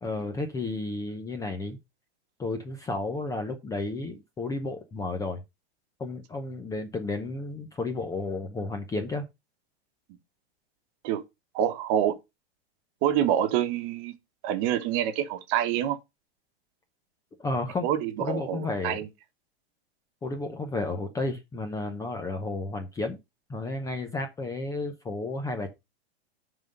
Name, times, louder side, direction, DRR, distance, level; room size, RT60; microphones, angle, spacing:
voice 1, 0.0-1.8 2.4-5.4 6.0-9.3 17.4-17.9 18.2-19.0 20.2-23.2 23.5-25.7, left 2 dB, 10° left, 0.7 m, -32 dB
voice 2, 11.5-12.2 13.0-14.1 14.4-16.0 17.8-19.1, right 10 dB, 40° right, 1.3 m, -26 dB
10.5 x 3.9 x 5.4 m
supercardioid pair, 145°, 31 cm